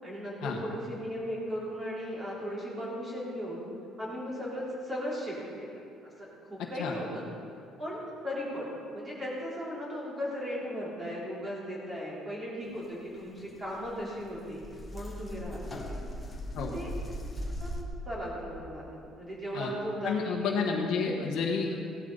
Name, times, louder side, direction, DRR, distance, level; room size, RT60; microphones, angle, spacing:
voice 1, 0.0-3.6 4.0-7.2 7.8-14.6 14.9-16.0 16.5-16.9 17.6-17.7 18.1-20.7 21.0-21.2, equal, 20° right, -6 dB, 3.9 m, -37 dB
sound 1, 13.4-13.5 13.6-17.8, equal, 15° left, 1.3 m, -39 dB
voice 2, 20.0-21.8, left 5 dB, 65° left, 1 dB, 1.5 m, -30 dB
17.0 x 12.5 x 4.1 m, 2.4 s
cardioid pair, 160°, 0 cm